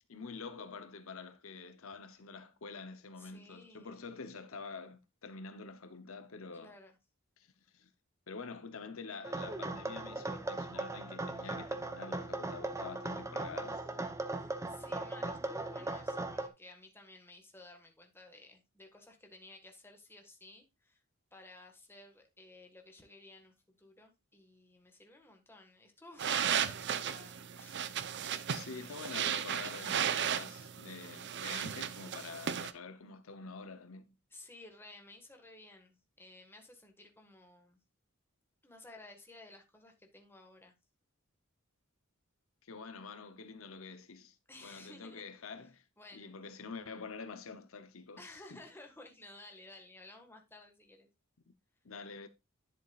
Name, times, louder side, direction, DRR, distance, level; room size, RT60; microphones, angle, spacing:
voice 1, 0.1-6.7 7.4-7.9 8.3-14.1 28.5-34.2 42.6-44.4 44.6-45.8 46.1-48.6 51.5-51.6 51.8-52.3, left 4 dB, 70° left, 0.8 m, -47 dB
voice 2, 3.2-4.0 6.5-7.0 14.3-21.0 21.3-28.3 34.3-37.8 38.6-40.7 44.5-45.2 46.0-46.4 48.2-51.1, left 2 dB, 10° left, 1.6 m, -55 dB
sound 1, 9.2-16.5, right 2 dB, 15° right, 0.8 m, -38 dB
sound 2, 26.2-32.7, right 8 dB, 55° right, 0.6 m, -35 dB
11.0 x 7.2 x 2.4 m
head